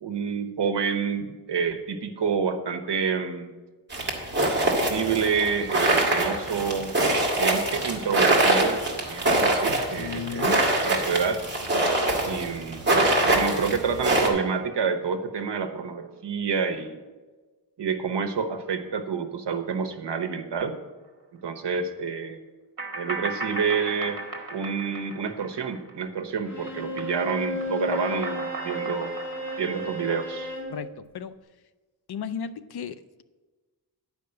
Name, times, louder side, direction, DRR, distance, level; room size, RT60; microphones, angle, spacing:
voice 1, 0.0-3.6 4.7-6.9 7.4-8.8 9.1-11.4 12.2-12.9 13.2-17.0 17.8-20.8 21.4-22.4 22.9-24.2 24.5-29.1 29.6-30.5, right 6 dB, 80° right, 7 dB, 1.0 m, -28 dB
sound 1, 3.9-14.3, right 2 dB, 25° right, 1.8 m, -24 dB
voice 2, 9.7-10.6 30.7-30.9 31.1-31.3 32.1-33.2, left 8 dB, 65° left, 13 dB, 0.5 m, -34 dB
sound 2, 22.8-26.2 26.5-30.5, right 2 dB, 50° right, 1.5 m, -37 dB
Bowed string instrument, 26.4-30.8, left 1 dB, 40° left, 3.1 m, -33 dB
10.5 x 5.1 x 7.7 m, 1.3 s
wide cardioid pair, 180°, 41 cm